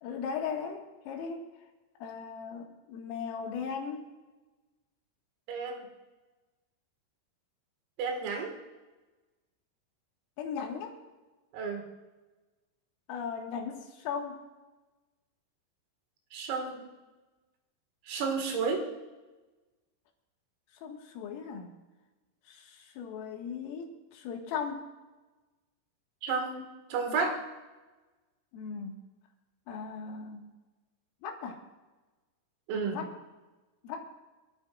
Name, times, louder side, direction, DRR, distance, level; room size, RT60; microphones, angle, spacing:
voice 1, 0.0-1.5 2.0-4.1 10.4-10.9 13.1-14.4 20.8-21.7 22.5-24.8 28.5-29.0 29.7-30.5 31.2-31.6 32.8-33.1 33.8-34.1, left 6 dB, 85° left, 1 dB, 4.5 m, -38 dB
voice 2, 5.5-5.9 8.0-8.5 11.5-11.8 16.3-16.8 18.1-18.8 26.2-26.6 26.9-27.3 32.7-33.0, right 4 dB, 90° right, 2 dB, 4.8 m, -31 dB
27.0 x 13.5 x 2.5 m, 1.2 s
omnidirectional pair, 5.8 m